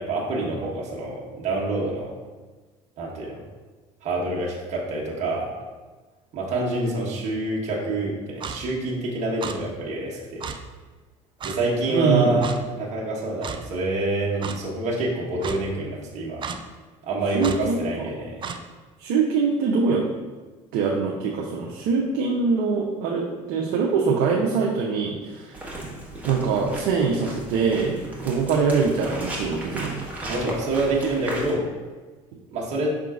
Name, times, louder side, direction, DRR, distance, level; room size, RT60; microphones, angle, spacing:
voice 1, 0.0-2.1 3.0-3.4 4.0-5.5 6.3-10.5 11.4-16.4 17.0-18.4 30.3-31.7 32.5-32.9, right 2 dB, 45° right, -4 dB, 1.2 m, -27 dB
Clock, 8.4-8.6 9.4-9.6 10.4-10.6 11.4-11.6 12.4-12.6 13.4-13.6 14.4-14.6 15.4-15.6 16.4-16.6 17.4-17.6 18.4-18.6, right 6 dB, 30° right, 0.4 m, -32 dB
voice 2, 11.9-12.5 17.3-17.8 19.0-20.1 20.7-25.7 26.2-30.1, right 5 dB, 65° right, -2 dB, 0.6 m, -23 dB
sound 1, 25.5-31.5, right 1 dB, 10° right, 1.4 m, -36 dB
5.6 x 3.7 x 2.4 m, 1.3 s
hypercardioid pair, 75°, 16 cm